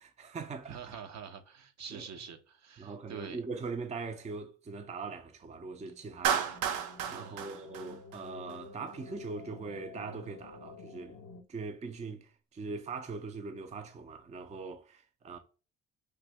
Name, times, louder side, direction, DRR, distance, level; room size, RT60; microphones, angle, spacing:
voice 1, 0.0-0.8 1.9-2.1 2.8-6.8 7.1-11.2 11.5-15.4, right 4 dB, 20° right, 0.5 m, -41 dB
voice 2, 0.7-3.4 7.0-7.5, right 7 dB, 50° right, 0.7 m, -46 dB
sound 1, 5.5-11.4, left 4 dB, 45° left, 0.7 m, -51 dB
Clapping, 6.2-8.5, right 8 dB, 90° right, 0.5 m, -32 dB
3.2 x 2.6 x 3.2 m
supercardioid pair, 60°, 35 cm